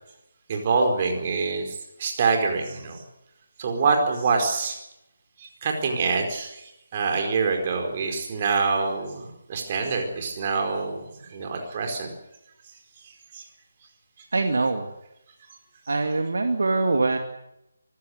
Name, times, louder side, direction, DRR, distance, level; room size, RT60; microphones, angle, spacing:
voice 1, 0.5-3.0 3.6-4.8 5.4-6.6 6.9-12.1 13.0-13.4, right 4 dB, 30° right, 3 dB, 4.7 m, -26 dB
voice 2, 14.3-14.9 15.9-17.2, right 3 dB, 55° right, 5 dB, 2.2 m, -23 dB
24.5 x 15.5 x 9.6 m, 0.87 s
figure-of-eight pair, 150°, 0 cm